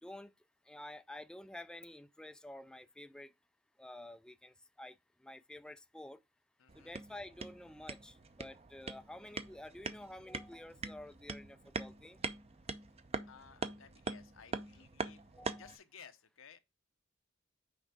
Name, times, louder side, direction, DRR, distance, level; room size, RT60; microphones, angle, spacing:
voice 1, 0.0-0.3 0.7-3.3 3.8-6.2 6.7-12.2 15.3-15.7, left 1 dB, 5° left, 0.3 m, -50 dB
voice 2, 6.6-7.0 13.3-15.2 15.5-16.6, left 7 dB, 90° left, 0.9 m, -57 dB
sound 1, 6.7-15.8, right 4 dB, 30° right, 0.7 m, -43 dB
6.3 x 4.6 x 5.1 m
head